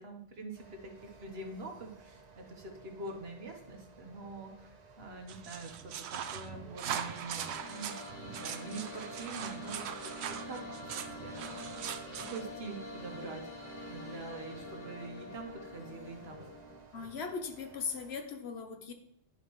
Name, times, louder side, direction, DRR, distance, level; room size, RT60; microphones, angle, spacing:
voice 1, 0.0-10.6 10.9-11.9 12.3-13.4 13.9-16.5, right 3 dB, 70° right, 3 dB, 1.4 m, -45 dB
sound 1, 0.5-18.2, right 4 dB, 45° right, 0.9 m, -57 dB
sound 2, 5.3-12.4, right 9 dB, 85° right, 0.8 m, -41 dB
sound 3, 6.5-16.8, left 1 dB, 50° left, 1.2 m, -46 dB
voice 2, 16.9-18.9, left 5 dB, 75° left, 6 dB, 1.1 m, -39 dB
11.0 x 4.8 x 3.1 m, 0.73 s
omnidirectional pair, 1.1 m